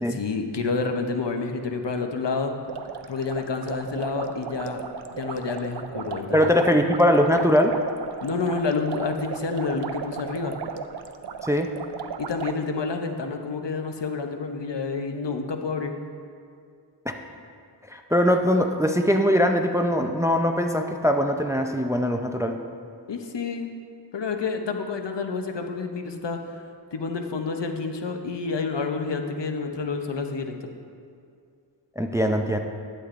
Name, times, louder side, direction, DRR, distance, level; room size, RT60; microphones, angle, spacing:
voice 1, 0.1-2.5 3.1-4.8 5.1-6.5 8.2-10.5 12.2-15.9 23.1-23.7 24.1-26.6 26.9-30.6, left 4 dB, 75° left, 5 dB, 0.7 m, -29 dB
sound 1, 2.7-12.6, right 6 dB, 65° right, 0.5 m, -35 dB
voice 2, 6.3-7.7 11.4-11.7 17.9-22.6 32.0-32.6, equal, 5° right, 4 dB, 0.4 m, -21 dB
11.5 x 8.6 x 2.5 m, 2.4 s
wide cardioid pair, 60°, 43 cm